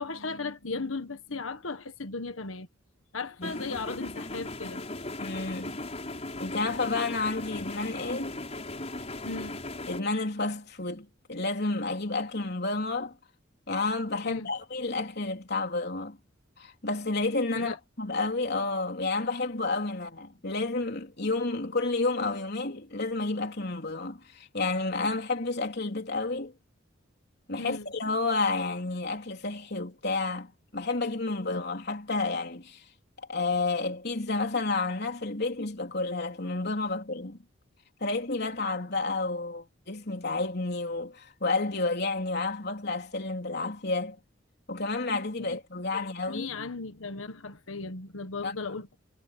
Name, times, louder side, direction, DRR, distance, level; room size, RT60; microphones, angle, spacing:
voice 1, 0.0-2.7 3.1-4.8 9.2-9.6 14.2-14.5 17.5-17.7 27.6-27.9 45.4-45.6 45.9-49.0, left 3 dB, 80° left, 1.6 m, -36 dB
sound 1, 3.4-10.0, left 2 dB, 30° left, 5.3 m, -38 dB
voice 2, 5.2-5.9 6.4-8.4 9.9-13.2 13.7-16.2 16.6-26.5 27.5-32.9 33.3-37.4 38.0-44.2 44.7-46.5 48.4-48.5, left 3 dB, 55° left, 3.9 m, -30 dB
head